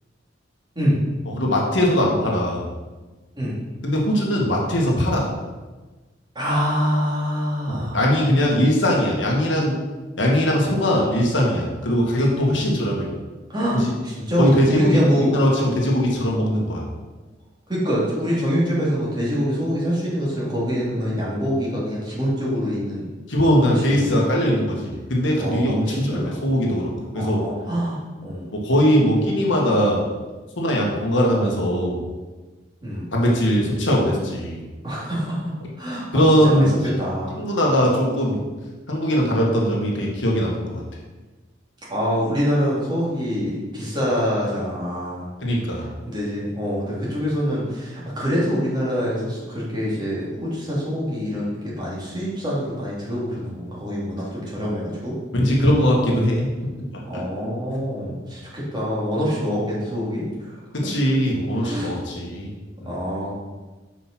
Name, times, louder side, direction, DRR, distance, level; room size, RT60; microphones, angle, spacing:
voice 1, 1.3-2.6 3.8-5.3 7.7-9.8 10.2-13.1 13.7-13.9 14.4-16.8 23.3-27.5 28.5-30.0 30.6-32.0 33.1-34.6 36.1-36.7 37.4-38.4 38.9-40.8 45.4-45.9 55.3-56.7 57.1-57.2 60.7-62.5, equal, 70° left, -2 dB, 1.6 m, -20 dB
voice 2, 6.3-8.0 13.5-15.3 17.7-23.0 23.6-24.2 25.4-26.2 27.1-28.5 32.8-33.1 34.8-35.5 35.8-36.1 36.4-36.7 37.0-37.4 41.9-45.3 46.1-55.1 57.0-60.5 61.6-61.9 62.8-63.3, equal, 25° right, -7 dB, 2.5 m, -25 dB
5.9 x 5.0 x 6.0 m, 1.2 s
head